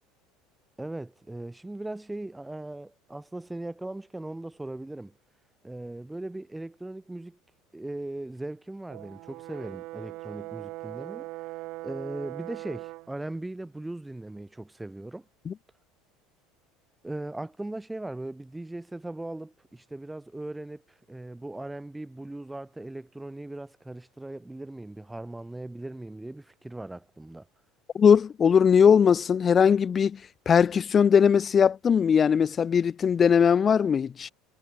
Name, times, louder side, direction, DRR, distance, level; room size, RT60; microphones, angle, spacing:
voice 1, 0.8-5.1 5.6-7.4 7.7-11.3 11.8-15.2 17.0-20.8 21.1-27.4, right 2 dB, 10° right, 4.9 m, -38 dB
Brass instrument, 8.9-13.1, right 20 dB, 60° right, 0.6 m, -40 dB
voice 2, 27.9-30.2 30.5-34.3, left 7 dB, 35° left, 0.5 m, -20 dB
hypercardioid pair, 75°, 0 cm